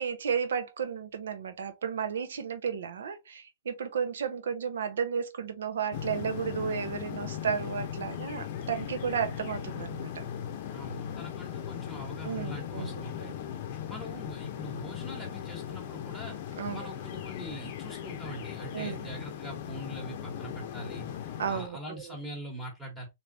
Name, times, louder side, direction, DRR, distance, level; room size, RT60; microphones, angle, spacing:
voice 1, 0.0-10.2 12.2-13.4 16.6-16.8 18.7-19.1 21.4-22.2, right 7 dB, 80° right, 0.8 m, -33 dB
sound 1, 5.9-21.7, left 9 dB, 50° left, 0.6 m, -38 dB
voice 2, 10.7-13.4 13.9-16.4 16.7-21.1 21.5-23.1, equal, 5° right, 1.2 m, -42 dB
3.2 x 2.7 x 2.7 m
hypercardioid pair, 140°, 0 cm